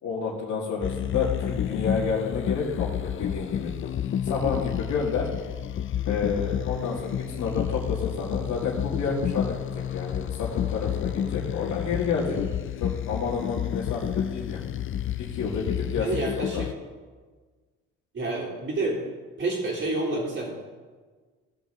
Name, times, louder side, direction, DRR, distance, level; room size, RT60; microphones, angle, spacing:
voice 1, 0.0-3.7 4.2-5.3 6.1-9.6 9.9-12.4 12.8-14.7 15.2-16.6, left 5 dB, 75° left, -4 dB, 2.1 m, -30 dB
sound 1, 0.8-16.7, left 10 dB, 45° left, 0.5 m, -30 dB
voice 2, 16.0-16.7 18.1-19.0 19.4-20.5, right 2 dB, 50° right, -9 dB, 3.1 m, -28 dB
17.0 x 6.6 x 3.7 m, 1.4 s
cardioid pair, 90°, 30 cm